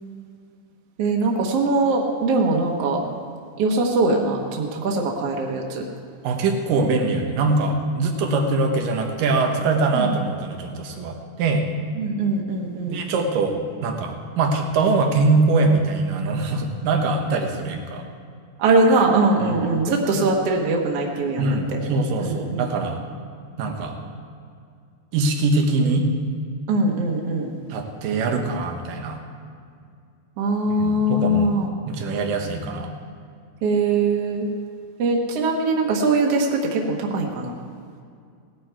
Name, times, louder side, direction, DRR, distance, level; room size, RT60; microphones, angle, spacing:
voice 1, 1.0-3.0 3.6-5.8 9.9-10.1 12.0-13.0 18.6-21.8 22.2-22.7 26.7-27.5 30.4-31.7 33.6-34.5 35.0-37.5, right 2 dB, 60° right, 0 dB, 1.9 m, -21 dB
voice 2, 6.2-11.7 12.9-13.6 13.8-18.0 19.4-19.6 20.1-20.2 21.4-23.0 23.6-24.0 25.1-26.1 27.7-29.2 30.7-31.5 31.9-32.9, right 3 dB, 90° right, 3 dB, 2.9 m, -22 dB
18.0 x 11.5 x 4.6 m, 2.3 s
omnidirectional pair, 3.8 m